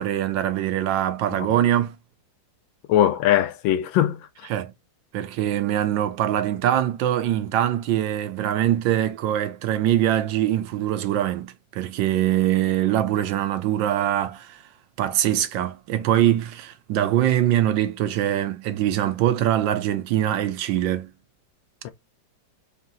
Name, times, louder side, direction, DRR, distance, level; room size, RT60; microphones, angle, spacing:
voice 1, 0.0-2.0 4.5-4.7 5.1-14.6 15.0-21.1, right 12 dB, 80° right, 1.4 m, -23 dB
voice 2, 2.9-4.5 21.8-21.9, left 11 dB, 90° left, 1.4 m, -21 dB
3.7 x 2.8 x 3.8 m
omnidirectional pair, 2.0 m